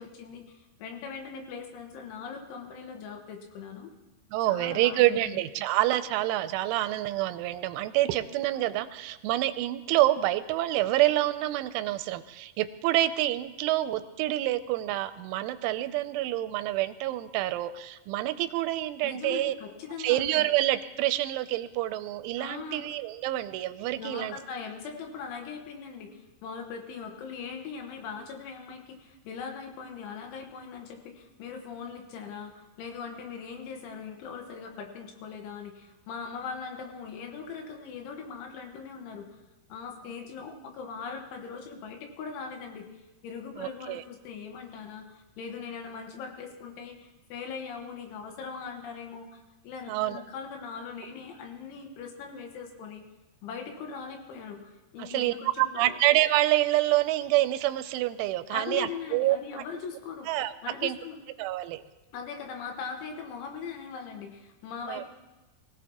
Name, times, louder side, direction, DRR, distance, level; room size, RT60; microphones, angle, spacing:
voice 1, 0.0-3.9 4.5-5.4 19.0-20.5 22.4-22.8 24.0-39.4 39.7-53.0 53.4-56.0 58.5-60.4 60.6-61.2 62.1-65.1, left 5 dB, 80° left, 3 dB, 3.7 m, -40 dB
voice 2, 4.3-19.5 20.0-24.3 43.6-44.0 49.9-50.2 55.0-59.4 60.3-60.5 60.8-61.0 61.4-61.8 64.9-65.0, right 15 dB, 85° right, 12 dB, 3.0 m, -27 dB
24.0 x 16.5 x 2.9 m, 1.1 s
omnidirectional pair, 5.6 m